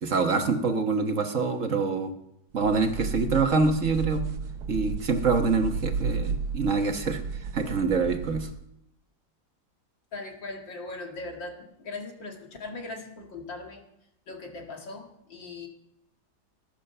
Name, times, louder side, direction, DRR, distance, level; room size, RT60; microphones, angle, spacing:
voice 1, 0.0-2.1 2.5-4.3 4.7-8.5, right 4 dB, 45° right, 5 dB, 1.5 m, -25 dB
sound 1, 2.6-8.6, right 5 dB, 65° right, 1.3 m, -33 dB
voice 2, 10.1-13.8 14.3-15.7, left 3 dB, 85° left, 2 dB, 3.2 m, -39 dB
20.0 x 10.5 x 6.7 m, 0.80 s
omnidirectional pair, 2.0 m